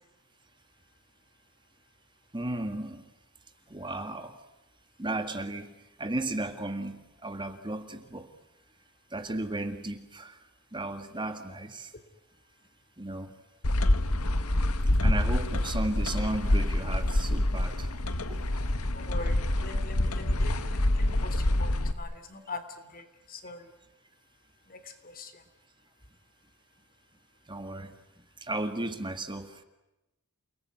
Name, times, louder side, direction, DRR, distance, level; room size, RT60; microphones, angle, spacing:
voice 1, 2.3-3.0 3.7-4.4 5.0-8.3 9.1-10.4 10.7-11.9 13.0-13.3 15.0-17.9 18.3-18.4 27.5-27.9 28.4-29.6, right 2 dB, 20° right, 8 dB, 1.8 m, -35 dB
sound 1, 13.6-21.9, left 1 dB, 75° left, 1.7 m, -26 dB
voice 2, 18.9-23.7 24.7-25.4, left 3 dB, 40° left, 10 dB, 3.1 m, -43 dB
29.0 x 20.0 x 9.4 m, 0.97 s
head